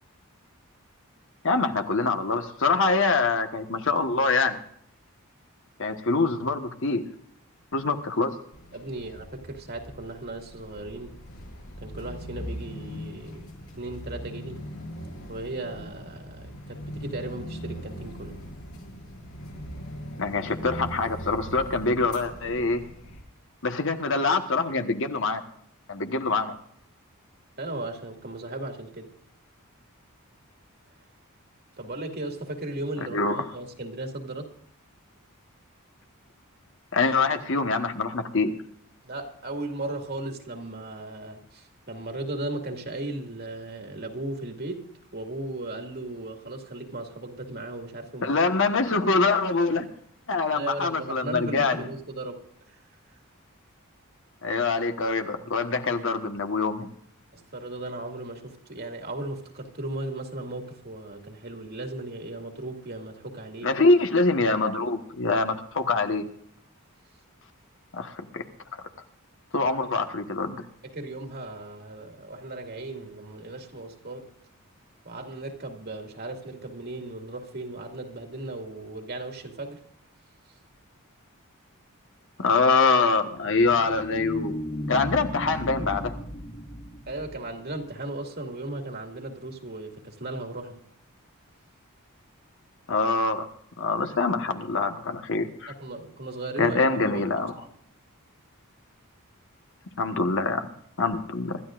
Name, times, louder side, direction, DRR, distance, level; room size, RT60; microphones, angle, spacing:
voice 1, 1.4-4.6 5.8-7.0 7.7-8.3 20.2-22.8 23.6-25.4 25.9-26.5 33.1-33.4 36.9-38.6 48.2-49.9 50.3-51.8 54.4-56.9 63.6-66.2 67.9-68.4 69.5-70.6 82.4-84.5 84.9-86.1 92.9-93.5 93.8-95.7 96.6-97.5 100.0-100.7 101.0-101.6, left 3 dB, 60° left, 1.4 m, -24 dB
sound 1, 8.5-23.2, equal, 90° left, 6.8 m, -40 dB
voice 2, 8.7-11.2 11.8-14.6 15.3-18.4 27.6-29.1 31.8-34.5 39.0-48.4 50.5-52.4 52.7-52.8 57.3-63.7 70.8-74.3 75.0-79.8 87.1-90.8 95.8-96.8 97.1-97.2 97.5-97.7, right 2 dB, 45° right, 2.2 m, -36 dB
sound 2, 83.3-87.8, equal, 35° left, 2.0 m, -35 dB
25.5 x 13.0 x 2.5 m
head